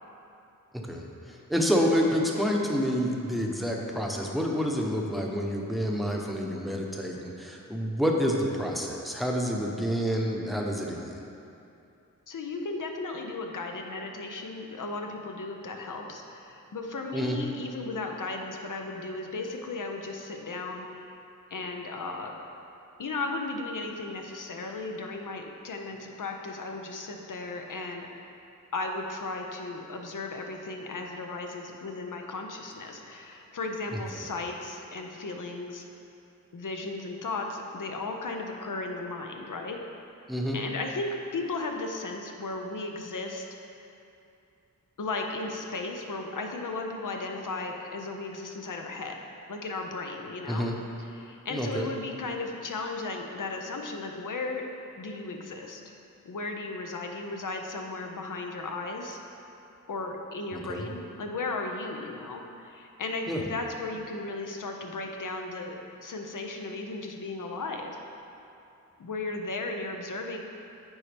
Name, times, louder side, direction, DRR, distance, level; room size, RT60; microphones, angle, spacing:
voice 1, 0.8-11.2 17.1-17.4 33.9-34.0 40.3-40.6 50.5-50.8 51.5-51.9 60.5-60.9 63.3-63.4, equal, ahead, -1 dB, 0.9 m, -28 dB
voice 2, 12.3-21.1 21.5-22.4 23.0-28.1 28.7-35.8 36.5-39.8 40.5-43.5 45.0-49.2 49.5-50.7 51.1-54.6 55.0-55.8 56.2-59.2 59.9-65.8 66.0-68.0 69.0-70.4, left 3 dB, 65° left, 3 dB, 0.7 m, -35 dB
9.0 x 4.3 x 3.4 m, 2.7 s
cardioid pair, 45°, 34 cm